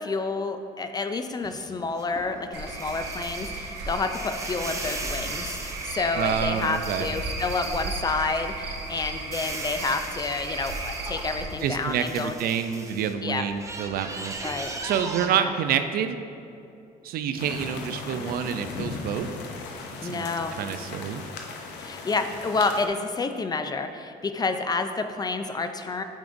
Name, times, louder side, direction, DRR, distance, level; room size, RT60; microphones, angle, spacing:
voice 1, 0.0-12.3 13.2-13.5 14.4-14.7 15.3-15.5 20.0-20.5 21.8-26.0, left 3 dB, 25° left, 8 dB, 0.4 m, -29 dB
sound 1, 1.4-8.4 8.8-13.1 13.5-15.3, right 2 dB, 20° right, 0.6 m, -39 dB
Cricket / Frog, 2.5-11.4, right 2 dB, 85° right, 1.0 m, -34 dB
voice 2, 6.2-7.1 11.6-14.3 14.8-16.2 17.0-19.3 20.0-21.2, right 8 dB, 65° right, 9 dB, 0.4 m, -28 dB
sound 2, 17.4-22.9, left 4 dB, 80° left, 0.7 m, -37 dB
8.9 x 5.1 x 2.6 m, 2.6 s
cardioid pair, 110°, 17 cm